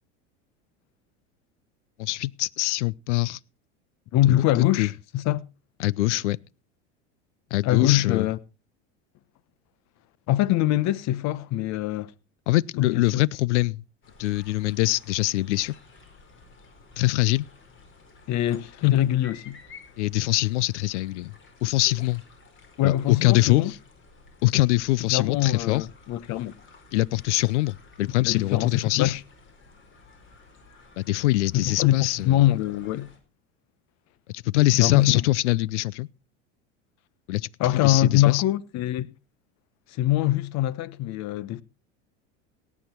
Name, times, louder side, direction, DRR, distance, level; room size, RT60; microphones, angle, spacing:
voice 1, 2.0-3.4 4.3-4.4 4.8-4.9 5.8-6.4 7.5-8.3 12.5-13.8 14.2-15.7 17.0-17.5 20.0-21.3 21.6-22.2 22.8-23.8 24.4-25.8 26.9-29.1 31.0-32.4 34.3-36.1 37.3-37.5 37.8-38.4, left 19 dB, 85° left, 0.6 m, -23 dB
voice 2, 4.1-5.4 7.6-8.4 10.3-12.1 12.8-13.0 18.3-19.6 22.8-23.7 25.1-26.5 28.2-29.2 31.5-33.1 34.7-35.1 37.6-39.1 39.9-41.6, left 14 dB, 50° left, 1.0 m, -23 dB
sound 1, 14.0-33.2, left 3 dB, 35° left, 4.8 m, -52 dB
18.0 x 8.6 x 4.4 m
supercardioid pair, 100°, 34 cm